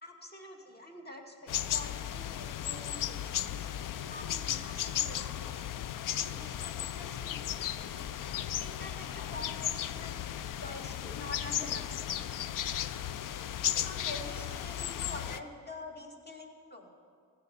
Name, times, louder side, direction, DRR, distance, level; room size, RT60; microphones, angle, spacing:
voice 1, 0.0-3.7 4.0-5.8 6.2-10.1 10.6-12.3 13.8-16.9, left 2 dB, 30° left, 2 dB, 2.1 m, -47 dB
sound 1, 1.5-15.4, left 11 dB, 75° left, 0.5 m, -35 dB
15.5 x 6.0 x 9.8 m, 2.2 s
supercardioid pair, 40°, 32 cm